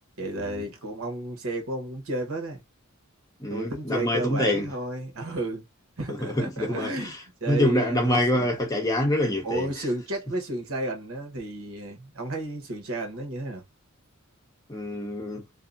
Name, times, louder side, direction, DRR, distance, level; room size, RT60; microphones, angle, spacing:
voice 1, 0.2-2.6 3.5-5.7 6.0-7.1 7.4-8.5 9.4-13.6, right 2 dB, 85° right, 0.9 m, -32 dB
voice 2, 3.4-4.7 6.1-7.1 7.5-9.7 14.7-15.4, left 1 dB, 15° left, 0.8 m, -26 dB
2.6 x 2.0 x 2.5 m
head